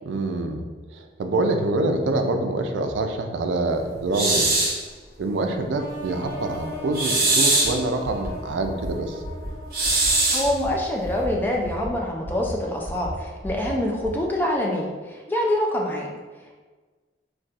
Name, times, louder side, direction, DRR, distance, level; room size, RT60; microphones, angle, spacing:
voice 1, 0.1-0.7 0.9-4.5 5.2-9.2, right 2 dB, 80° right, 5 dB, 0.3 m, -26 dB
sound 1, 4.1-4.8 6.9-7.8 9.7-10.5, right 2 dB, 50° right, 0.7 m, -21 dB
sound 2, 5.8-10.6, left 1 dB, 25° left, 1.5 m, -38 dB
sound 3, 7.6-7.7 8.0-8.3 8.6-8.9 9.2-9.5 9.8-10.1 10.4-10.7 11.0-11.3 11.6-11.9 12.2-12.5 12.8-13.1 13.4-13.7 14.0-14.1, equal, 10° right, 1.4 m, -34 dB
voice 2, 10.3-16.1, left 1 dB, 10° left, -1 dB, 0.3 m, -25 dB
4.0 x 2.2 x 2.4 m, 1.4 s
head